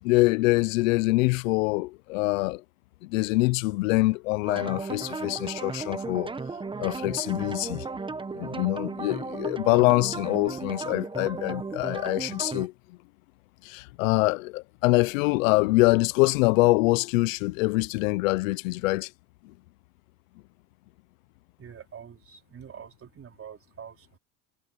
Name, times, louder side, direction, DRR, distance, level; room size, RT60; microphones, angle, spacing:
voice 1, 0.0-2.6 3.0-6.3 6.8-7.8 8.3-12.7 13.6-19.1 19.4-19.5, left 22 dB, 90° left, 0.7 m, -24 dB
sound 1, 4.5-12.7, right 4 dB, 15° right, 1.0 m, -35 dB
voice 2, 21.6-24.2, right 8 dB, 35° right, 4.1 m, -45 dB
supercardioid pair, 105°, 38 cm